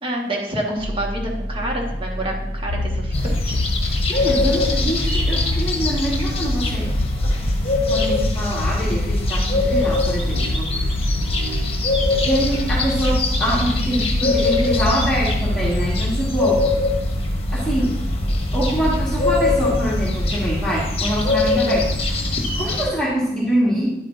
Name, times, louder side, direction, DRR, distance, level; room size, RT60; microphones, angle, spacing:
voice 1, 0.0-3.6, right 1 dB, 30° right, -1 dB, 1.5 m, -28 dB
sound 1, 0.8-20.7, equal, 85° right, 2.1 m, -29 dB
sound 2, 2.7-16.1, left 3 dB, 80° left, 0.4 m, -30 dB
sound 3, 3.1-22.9, left 2 dB, 35° left, 1.2 m, -22 dB
voice 2, 4.1-6.9 7.8-11.0 12.2-16.6 17.5-17.9 18.5-21.9 22.6-23.9, right 1 dB, 5° left, -8 dB, 1.6 m, -24 dB
10.0 x 8.2 x 2.6 m, 0.82 s
head